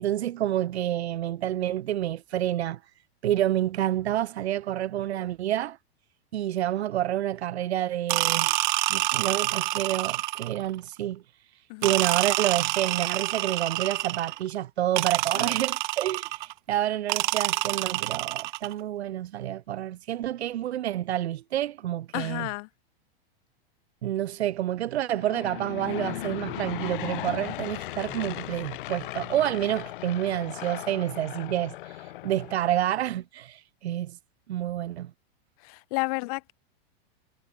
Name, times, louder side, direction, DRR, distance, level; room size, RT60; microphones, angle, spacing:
voice 1, 0.0-2.8 3.2-5.8 6.3-8.5 8.9-11.2 11.5-22.5 24.0-34.2 34.5-35.1, right 12 dB, 80° right, 2.3 m, -29 dB
sound 1, 8.1-10.7 11.8-14.4 15.0-16.5 17.1-18.7, right 18 dB, 45° right, 2.4 m, -27 dB
voice 2, 22.1-22.7 35.6-36.5, left 30 dB, 35° left, 3.2 m, -32 dB
Aircraft / Engine, 25.1-33.0, left 16 dB, 55° left, 3.9 m, -37 dB
supercardioid pair, 175°, 32 cm